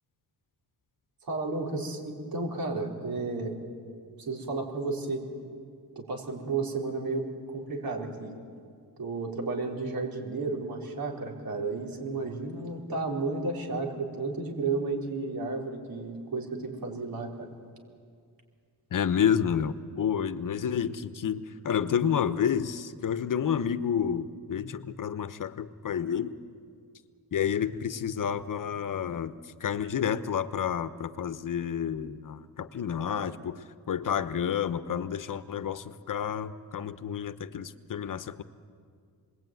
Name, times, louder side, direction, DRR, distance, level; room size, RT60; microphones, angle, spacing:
voice 1, 1.2-3.6 4.2-5.2 5.9-8.4 9.0-17.5, right 3 dB, 65° right, 0 dB, 4.6 m, -32 dB
voice 2, 18.9-26.4 27.3-29.4 29.6-38.4, left 8 dB, 55° left, 13 dB, 1.0 m, -30 dB
27.5 x 21.0 x 9.3 m, 2.2 s
cardioid pair, 110°, 38 cm